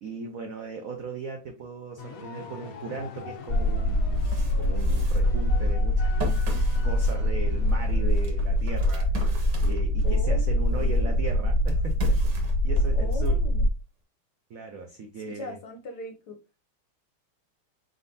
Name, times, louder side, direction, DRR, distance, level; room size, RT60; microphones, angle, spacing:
voice 1, 0.0-6.3 6.8-9.1 9.6-13.4 14.5-15.6, right 4 dB, 80° right, 3 dB, 0.7 m, -38 dB
sound 1, 2.0-8.5, left 6 dB, 90° left, 0.7 m, -43 dB
sound 2, 3.4-3.5 3.9-10.3 10.7-13.3, right 4 dB, 60° right, 1.4 m, -41 dB
sound 3, 3.5-13.7, left 1 dB, 35° left, 0.9 m, -24 dB
voice 2, 10.0-11.1 12.9-13.7 15.3-16.4, left 3 dB, 65° left, 5 dB, 1.0 m, -39 dB
4.1 x 3.8 x 2.6 m, 0.29 s
omnidirectional pair, 2.3 m